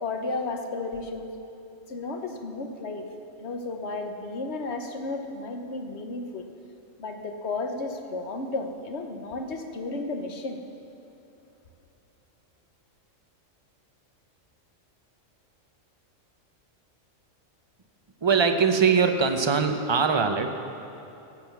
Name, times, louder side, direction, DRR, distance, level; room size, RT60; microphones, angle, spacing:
voice 1, 0.0-1.3 1.9-3.0 3.4-6.4 7.0-10.6, left 3 dB, 60° left, 5 dB, 1.3 m, -33 dB
voice 2, 18.2-20.5, right 5 dB, 25° right, 6 dB, 0.6 m, -22 dB
15.0 x 8.0 x 7.1 m, 2.9 s
omnidirectional pair, 1.3 m